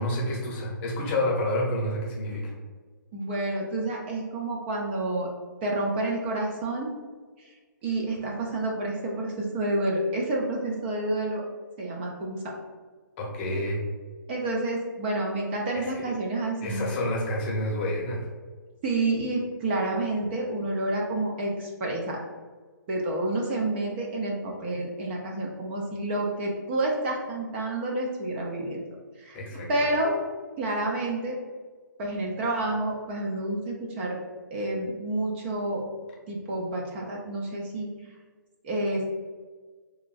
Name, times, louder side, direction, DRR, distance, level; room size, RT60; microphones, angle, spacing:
voice 1, 0.0-2.5 13.2-13.8 15.7-15.8 16.6-18.2 29.3-29.7, left 1 dB, 35° left, -2 dB, 0.7 m, -29 dB
voice 2, 3.1-5.3 5.6-6.9 7.8-11.4 11.8-12.5 14.3-16.8 18.8-22.2 22.9-28.8 29.2-29.4 29.7-30.2 30.6-31.4 32.0-34.2 34.5-35.9 36.3-37.9 38.6-39.0, right 2 dB, 30° right, -1 dB, 0.4 m, -29 dB
2.9 x 2.5 x 2.3 m, 1.4 s
hypercardioid pair, 140°, 11 cm